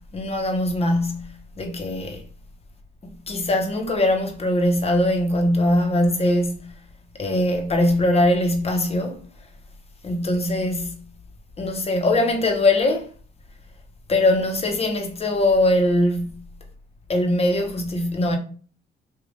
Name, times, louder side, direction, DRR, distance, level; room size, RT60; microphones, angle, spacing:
voice 1, 0.0-2.2 3.3-6.7 7.2-9.2 10.0-11.0 11.6-13.1 14.1-16.4 17.1-18.4, left 1 dB, 30° left, 0.9 m, -21 dB
3.2 x 2.5 x 3.8 m
cardioid pair, 90°, 20 cm